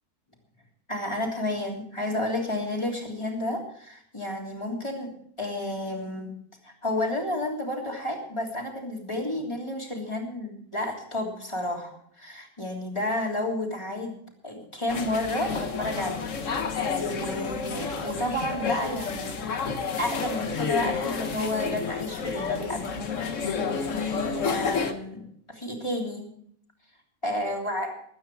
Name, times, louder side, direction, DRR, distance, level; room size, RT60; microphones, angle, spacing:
voice 1, 0.9-6.3 6.6-19.5 20.0-26.3 27.2-27.9, left 1 dB, 20° left, 0 dB, 3.3 m, -31 dB
sound 1, 14.9-24.9, left 5 dB, 55° left, 1.5 m, -30 dB
22.0 x 9.4 x 4.8 m, 0.63 s
omnidirectional pair, 1.6 m